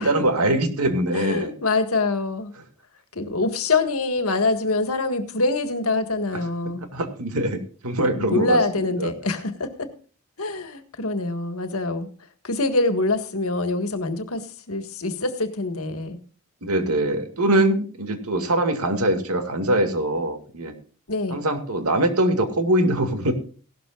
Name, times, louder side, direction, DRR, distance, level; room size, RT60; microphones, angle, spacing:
voice 1, 0.0-1.5 6.9-8.6 9.0-9.1 16.6-20.7 21.3-23.3, right 1 dB, 85° right, 6 dB, 2.2 m, -22 dB
voice 2, 1.1-2.5 3.1-6.8 8.1-9.9 10.4-12.1 12.4-16.2 21.1-21.4, left 3 dB, 75° left, 8 dB, 1.7 m, -25 dB
17.0 x 12.5 x 2.4 m, 0.40 s
head